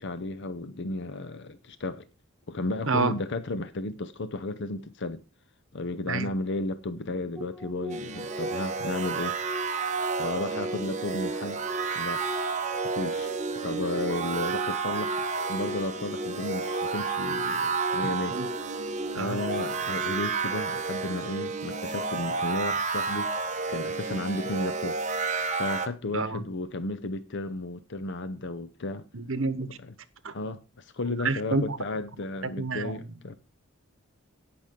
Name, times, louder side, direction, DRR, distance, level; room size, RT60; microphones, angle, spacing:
voice 1, 0.0-2.1 2.5-5.2 5.7-9.4 10.2-11.6 11.9-12.3 12.9-13.3 13.6-15.2 15.5-18.4 19.1-25.0 25.6-29.1 30.3-33.3, left 2 dB, 60° left, 0.7 m, -33 dB
sound 1, 7.4-20.6, equal, 5° right, 0.8 m, -39 dB
sound 2, 7.9-25.9, right 5 dB, 35° right, 1.1 m, -31 dB
voice 2, 29.1-29.7 30.2-30.3 31.1-31.8 32.6-33.1, right 3 dB, 65° right, 1.1 m, -29 dB
17.0 x 6.1 x 3.7 m
head